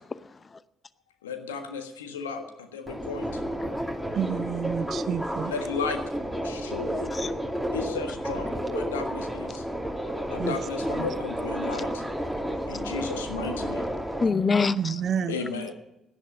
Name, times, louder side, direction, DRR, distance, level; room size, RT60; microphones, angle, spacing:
voice 1, 0.2-0.6 3.6-3.9 7.1-7.3 9.5-9.6 11.7-11.8 12.8-13.1 13.5-13.6 14.0-15.0, left 4 dB, 35° left, 0.8 m, -28 dB
voice 2, 1.2-3.4 5.5-6.0 6.4-7.1 7.7-9.6 10.3-12.0 12.7-13.9 15.3-15.7, left 5 dB, 80° left, 1.5 m, -34 dB
Subway metro underground, 2.9-14.2, equal, 5° left, 2.8 m, -31 dB
voice 3, 4.1-5.5 10.4-10.6 11.0-11.1 12.4-12.8 14.8-15.4, right 8 dB, 50° right, 0.7 m, -30 dB
17.5 x 11.0 x 5.5 m
figure-of-eight pair, 45°, 0 cm